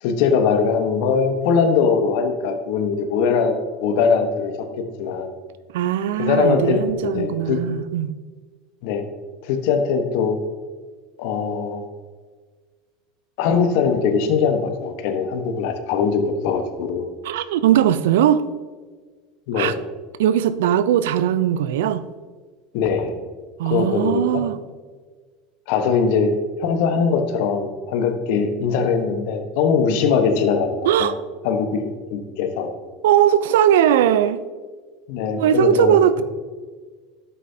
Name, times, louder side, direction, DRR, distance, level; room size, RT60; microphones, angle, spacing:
voice 1, 0.0-3.5 3.8-5.3 6.2-7.6 8.8-9.0 9.4-10.4 11.2-11.8 13.4-17.1 19.5-19.7 22.7-23.2 23.6-24.2 25.7-26.3 26.6-31.1 31.4-32.7 35.1-36.2, left 5 dB, 65° left, 7 dB, 1.1 m, -21 dB
voice 2, 5.7-8.1 17.2-18.5 19.5-19.8 20.2-22.0 23.6-24.6 30.8-31.2 33.0-34.4 35.3-36.2, right 10 dB, 75° right, 14 dB, 0.5 m, -19 dB
11.0 x 8.4 x 2.8 m, 1.4 s
hypercardioid pair, 85°, 0 cm